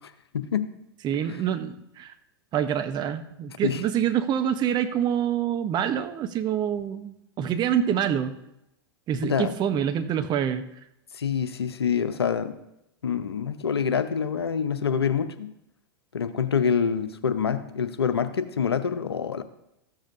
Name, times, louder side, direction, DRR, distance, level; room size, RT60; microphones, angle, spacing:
voice 1, 0.3-0.7 3.6-3.8 9.2-9.5 11.1-12.5 13.0-15.5 16.1-19.4, left 7 dB, 85° left, 11 dB, 0.7 m, -26 dB
voice 2, 1.0-2.1 2.5-8.3 9.1-10.6, right 9 dB, 35° right, 9 dB, 0.8 m, -26 dB
14.0 x 7.3 x 2.6 m, 0.83 s
hypercardioid pair, 95°, 13 cm